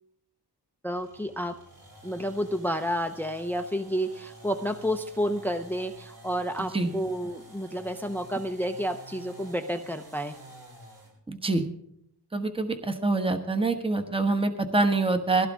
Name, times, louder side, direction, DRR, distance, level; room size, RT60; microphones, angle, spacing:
voice 1, 0.8-1.6 2.0-10.4, equal, 5° left, 7 dB, 0.7 m, -30 dB
sound 1, 0.9-11.2, right 1 dB, 55° right, 7.7 m, -50 dB
voice 2, 11.3-11.6 12.3-15.5, right 3 dB, 15° right, 6 dB, 1.3 m, -25 dB
21.0 x 16.0 x 3.7 m, 0.71 s
wide cardioid pair, 125°, 41 cm